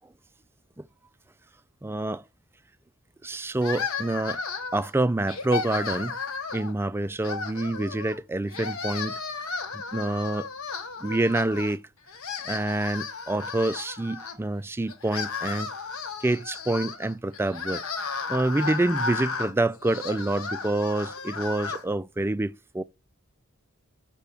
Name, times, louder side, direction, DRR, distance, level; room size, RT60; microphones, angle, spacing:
voice 1, 1.8-2.2 3.2-4.4 4.7-6.2 6.5-9.2 9.7-10.5 11.0-11.8 12.4-15.7 16.2-17.8 18.3-22.8, right 2 dB, 10° right, 0.3 m, -27 dB
sound 1, 3.6-4.9 5.3-6.7 7.2-8.2 8.5-11.8 12.1-14.3 14.9-21.8, left 4 dB, 75° left, 1.3 m, -34 dB
6.9 x 4.9 x 7.0 m
head